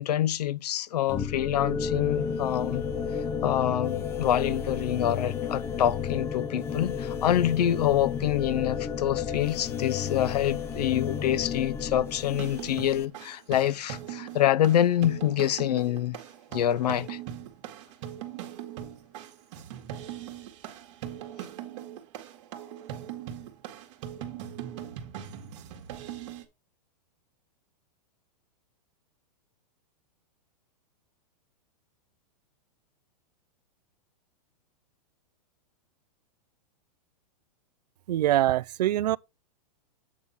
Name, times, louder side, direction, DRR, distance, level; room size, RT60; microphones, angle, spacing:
voice 1, 0.0-2.8 3.4-16.2 16.5-17.2, left 11 dB, 75° left, 0.7 m, -26 dB
sound 1, 1.1-13.1, left 7 dB, 10° left, 0.4 m, -32 dB
sound 2, 12.3-26.4, right 10 dB, 50° right, 1.7 m, -40 dB
voice 2, 38.1-39.2, right 13 dB, 80° right, 0.4 m, -24 dB
8.4 x 3.7 x 5.6 m
hypercardioid pair, 155°, 21 cm